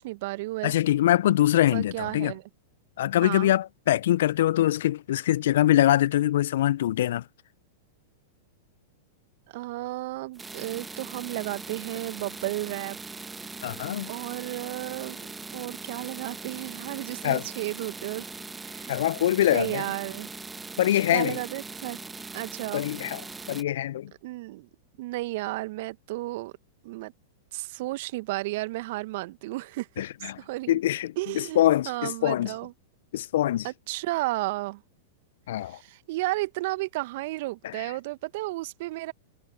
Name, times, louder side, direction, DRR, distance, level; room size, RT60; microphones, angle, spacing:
voice 1, 0.0-0.8 1.7-2.4 3.2-3.5 9.5-13.0 14.1-15.3 15.5-18.3 18.6-18.9 19.5-20.3 21.1-22.0 22.3-22.9 24.2-24.7 25.0-26.5 26.8-27.1 27.5-30.8 31.2-32.7 33.6-34.8 35.6-39.1, right 20 dB, 55° right, 1.5 m, -33 dB
voice 2, 0.6-2.3 3.0-7.2 13.6-14.1 17.2-17.4 18.9-19.8 20.8-21.4 22.7-23.2 23.5-24.1 30.0-30.4 30.7-32.5 33.1-33.7 35.5-35.8 37.6-37.9, left 13 dB, 65° left, 0.7 m, -24 dB
sound 1, 10.3-23.6, right 4 dB, 10° right, 1.6 m, -40 dB
figure-of-eight pair, 100°, 0 cm